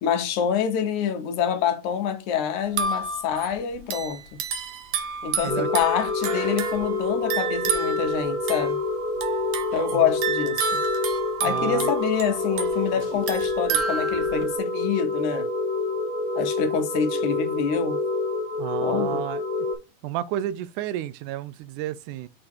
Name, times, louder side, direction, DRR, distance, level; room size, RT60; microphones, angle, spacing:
voice 1, 0.0-4.2 5.2-8.8 9.7-10.8 11.4-15.5 16.4-18.0 18.8-19.2, left 8 dB, 75° left, 2.3 m, -26 dB
sound 1, 2.7-14.6, right 5 dB, 65° right, 2.1 m, -30 dB
sound 2, 5.5-19.7, left 3 dB, 20° left, 2.3 m, -27 dB
voice 2, 11.4-11.9 18.6-19.4 20.0-22.3, right 12 dB, 80° right, 2.0 m, -31 dB
6.7 x 3.7 x 4.3 m
omnidirectional pair, 3.6 m